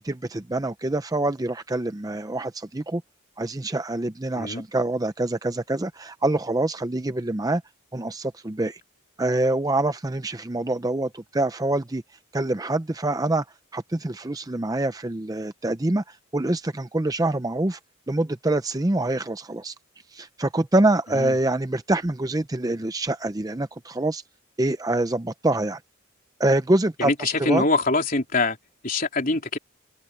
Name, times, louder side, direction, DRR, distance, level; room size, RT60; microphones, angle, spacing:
voice 1, 0.0-3.0 3.4-7.6 7.9-8.8 9.2-12.0 12.3-13.4 13.7-17.8 18.1-19.7 20.1-24.2 24.6-25.8 26.4-27.6, right 2 dB, 15° right, 0.5 m, -25 dB
voice 2, 27.0-28.6 28.8-29.6, left 3 dB, 40° left, 3.7 m, -24 dB
open air
head